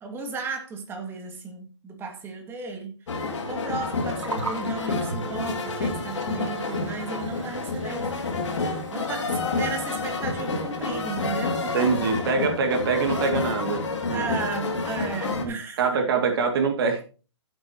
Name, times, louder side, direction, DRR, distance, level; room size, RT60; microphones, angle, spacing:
voice 1, 0.0-3.0 3.4-11.6 14.1-15.9, right 4 dB, 15° right, 2.0 m, -35 dB
sound 1, 3.1-15.5, left 3 dB, 75° left, 3.3 m, -29 dB
Gurgling, 3.9-11.1, right 3 dB, 85° right, 3.1 m, -41 dB
voice 2, 11.7-13.8 14.1-14.3 15.4-17.0, right 5 dB, 50° right, 2.3 m, -24 dB
15.0 x 7.9 x 2.9 m
hypercardioid pair, 145°, 16 cm